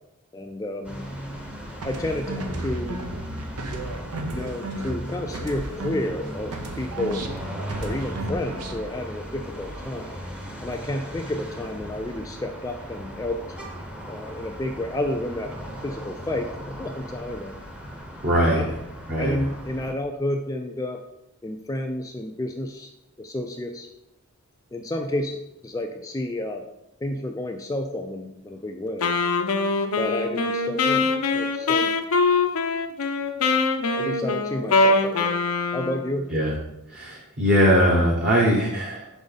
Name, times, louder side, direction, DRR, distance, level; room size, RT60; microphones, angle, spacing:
voice 1, 0.3-1.0 1.8-3.0 4.3-7.2 7.8-10.2 10.6-13.4 14.1-15.5 15.8-17.5 18.6-18.7 19.2-21.0 21.4-22.9 23.2-23.9 24.7-25.4 25.6-26.6 27.0-29.1 29.9-31.9 34.0-35.4 35.7-36.3, left 1 dB, 15° left, 3 dB, 0.3 m, -30 dB
sound 1, 0.8-19.9, equal, 5° right, 0.7 m, -38 dB
sound 2, 1.8-6.2 6.5-8.9, right 1 dB, 90° right, 0.7 m, -33 dB
voice 2, 18.2-18.7 19.1-19.3 36.3-36.5 36.9-39.1, equal, 40° right, -3 dB, 1.0 m, -20 dB
Wind instrument woodwind instrument, 29.0-36.1, left 3 dB, 70° left, 0.6 m, -23 dB
6.2 x 5.1 x 4.0 m, 0.87 s
head